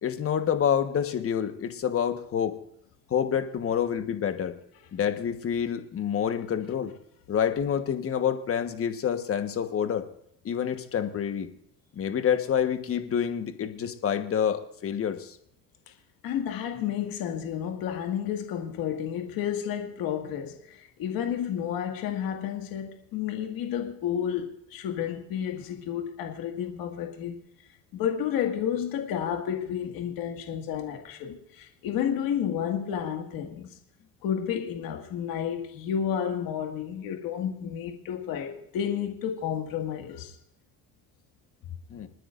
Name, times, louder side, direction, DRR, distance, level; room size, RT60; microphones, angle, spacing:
voice 1, 0.0-2.6 3.1-4.5 4.9-6.9 7.3-10.1 10.4-11.5 11.9-15.4 41.9-42.1, left 8 dB, 40° left, 1.3 m, -27 dB
voice 2, 16.2-27.4 27.9-33.7 34.2-40.3, left 9 dB, 75° left, 2.0 m, -31 dB
28.5 x 9.9 x 2.5 m
cardioid pair, 125°, 35 cm